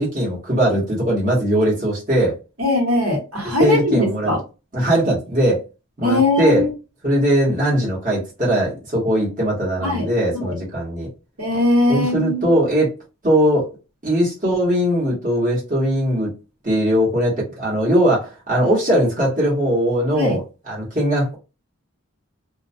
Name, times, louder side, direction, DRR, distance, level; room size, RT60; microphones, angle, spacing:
voice 1, 0.0-2.4 3.6-4.3 4.7-5.6 6.0-6.7 7.0-11.1 11.9-12.9 13.2-13.7 14.0-16.3 16.6-21.4, right 1 dB, 35° right, -6 dB, 1.0 m, -20 dB
voice 2, 2.6-4.4 6.0-6.7 9.8-10.6 11.4-12.5 20.1-20.4, left 1 dB, 75° right, -2 dB, 1.2 m, -20 dB
2.3 x 2.1 x 2.5 m, 0.30 s
head